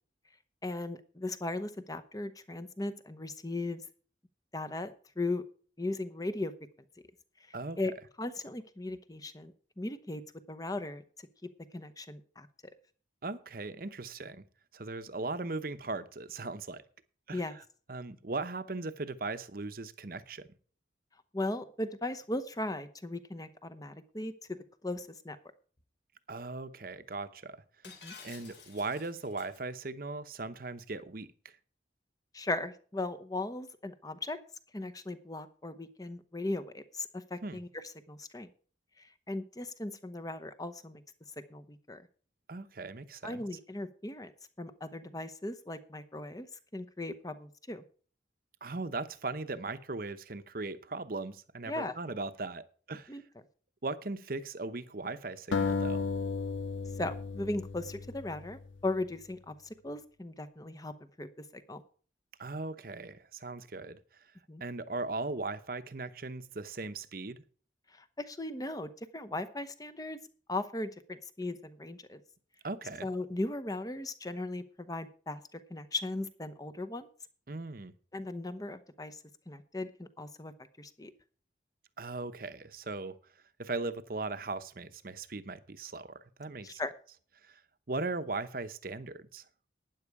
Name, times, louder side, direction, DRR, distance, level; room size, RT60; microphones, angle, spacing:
voice 1, 0.6-3.8 4.5-5.4 5.8-6.5 7.8-7.9 8.2-9.5 9.8-10.2 10.5-11.0 11.7-12.5 17.3-17.6 21.3-24.3 24.8-25.4 28.0-28.1 32.3-34.4 34.7-38.5 39.3-41.0 41.5-42.0 43.2-44.3 44.6-46.5 46.7-47.8 51.7-51.9 53.1-53.2 57.0-59.5 59.8-60.9 61.2-61.3 61.5-61.8 64.5-64.6 67.9-70.2 70.5-72.2 73.0-77.1 78.1-79.2 79.5-80.5 80.8-81.1 86.6-86.9, left 2 dB, 20° left, 0.9 m, -37 dB
voice 2, 13.2-14.4 14.7-16.8 17.3-17.6 17.9-20.4 26.3-27.6 28.2-31.5 37.4-37.6 42.5-43.4 48.6-53.2 53.8-56.1 62.4-64.0 64.6-67.4 72.6-73.1 77.5-77.9 82.0-83.2 83.6-86.8 87.4-87.6 87.9-89.4, right 3 dB, 50° right, 0.9 m, -38 dB
Shatter, 27.8-29.6, left 5 dB, 70° left, 3.3 m, -51 dB
sound 1, 55.5-58.7, left 4 dB, 90° left, 0.6 m, -34 dB
12.5 x 9.6 x 4.8 m
head